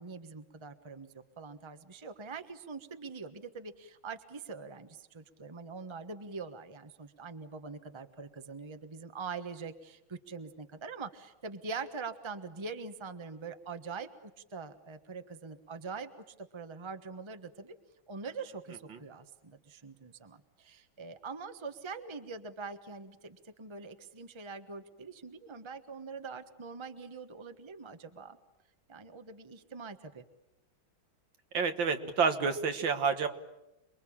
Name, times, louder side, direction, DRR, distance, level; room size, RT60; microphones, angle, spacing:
voice 1, 0.0-16.1 16.4-17.7 18.1-28.4 28.9-30.2, right 4 dB, 15° right, 8 dB, 1.1 m, -43 dB
voice 2, 31.5-33.3, right 5 dB, 70° right, 7 dB, 2.3 m, -29 dB
28.0 x 22.5 x 8.8 m, 0.90 s
omnidirectional pair, 2.1 m